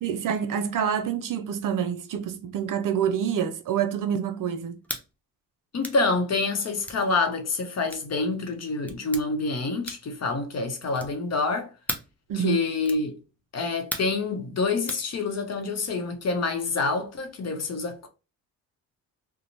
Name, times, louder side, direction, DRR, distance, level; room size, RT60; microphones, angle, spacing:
voice 1, 0.0-4.8 12.3-12.6, right 8 dB, 55° right, 0.5 m, -27 dB
sound 1, 4.8-5.1 5.8-6.0 6.8-7.0 7.9-8.1 8.9-9.2 9.8-10.2 10.9-11.2 11.9-12.1 12.8-13.1 13.9-14.2 14.9-15.1, left 1 dB, 5° left, 0.6 m, -35 dB
voice 2, 5.7-11.7 12.3-13.2 13.5-18.1, left 3 dB, 40° left, 0.8 m, -27 dB
2.8 x 2.2 x 2.6 m
supercardioid pair, 60°, 38 cm